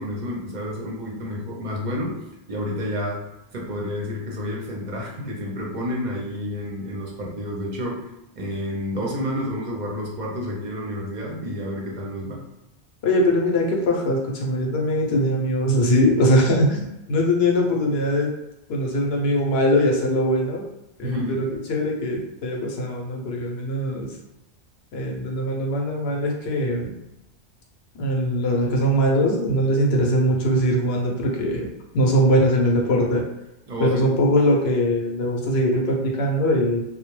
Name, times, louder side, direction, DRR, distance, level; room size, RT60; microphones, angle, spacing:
voice 1, 0.0-2.2 2.5-3.3 3.5-8.1 8.4-12.4 21.0-21.5 33.7-34.1, left 1 dB, 50° right, -2 dB, 0.6 m, -30 dB
voice 2, 13.0-18.3 18.7-20.7 21.0-24.1 24.9-26.9 28.0-33.3 33.8-36.8, equal, 65° left, 0 dB, 0.8 m, -21 dB
2.2 x 2.1 x 3.0 m, 0.92 s
omnidirectional pair, 1.2 m